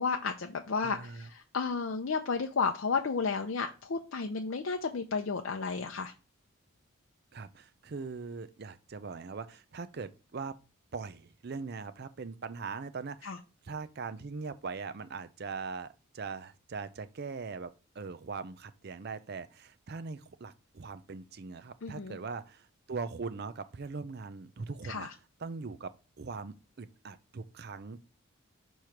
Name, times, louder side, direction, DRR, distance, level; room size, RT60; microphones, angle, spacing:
voice 1, 0.0-6.1 13.2-13.4 21.8-22.2 24.8-25.1, left 5 dB, 60° left, 0.5 m, -32 dB
voice 2, 0.8-1.3 7.3-10.5 10.9-13.4 13.6-25.1 25.4-28.0, right 4 dB, 50° right, 0.5 m, -41 dB
6.7 x 3.1 x 5.7 m
head